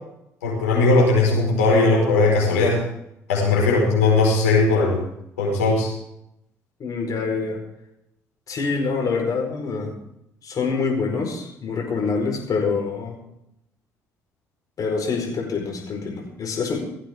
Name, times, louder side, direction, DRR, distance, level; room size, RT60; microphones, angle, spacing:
voice 1, 0.4-2.8 3.3-5.0 5.4-5.9, left 3 dB, 85° left, -2 dB, 4.9 m, -18 dB
voice 2, 6.8-7.6 8.5-9.9 10.4-13.2 14.8-16.8, left 4 dB, 50° left, 2 dB, 4.7 m, -26 dB
17.0 x 14.5 x 3.7 m, 0.80 s
hypercardioid pair, 50°, 8 cm